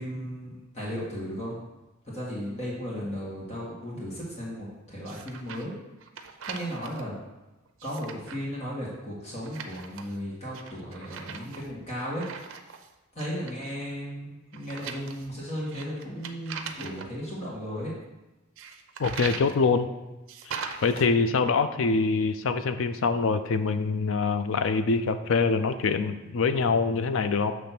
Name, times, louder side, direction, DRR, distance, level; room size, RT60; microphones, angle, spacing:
voice 1, 0.0-1.6 2.1-5.7 6.5-7.2 7.8-12.2 13.1-17.9, equal, 30° left, -7 dB, 1.7 m, -35 dB
sound 1, 5.0-5.7 6.0-7.0 7.7-8.4 9.4-10.2 10.5-12.9 13.2-13.7 14.5-17.1 18.6-19.6 20.3-21.1, right 6 dB, 80° right, 0.6 m, -40 dB
voice 2, 19.0-19.9 20.5-20.6 20.8-27.5, left 4 dB, 75° left, 11 dB, 0.4 m, -24 dB
6.9 x 3.2 x 5.9 m, 1.1 s
head